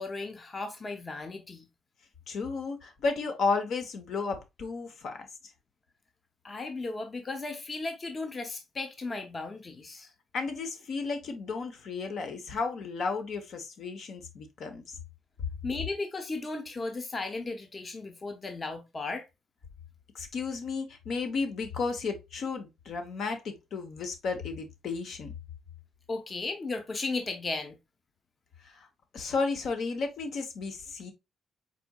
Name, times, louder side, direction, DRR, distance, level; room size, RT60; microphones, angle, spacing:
voice 1, 0.0-1.7 6.4-10.1 15.6-19.3 26.1-27.8, left 3 dB, 30° left, 0.9 m, -35 dB
voice 2, 2.3-5.2 10.3-15.0 20.1-25.3 28.6-28.9 29.1-31.1, left 4 dB, 65° left, 1.1 m, -33 dB
4.3 x 4.3 x 2.4 m
cardioid pair, 90°, 0 cm